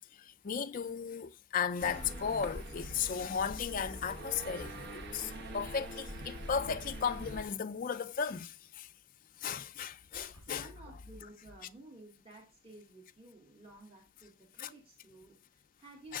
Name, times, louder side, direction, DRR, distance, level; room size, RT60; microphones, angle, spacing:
voice 1, 0.4-8.5 8.8-8.9 9.4-10.7 14.6-14.7 16.1-16.2, left 6 dB, 40° left, 0.4 m, -35 dB
sound 1, 1.8-7.4, right 1 dB, 50° right, 1.1 m, -44 dB
voice 2, 10.1-16.2, right 2 dB, 25° right, 1.7 m, -54 dB
sound 2, 10.1-10.5, left 1 dB, 65° right, 4.6 m, -56 dB
7.2 x 6.2 x 3.6 m
head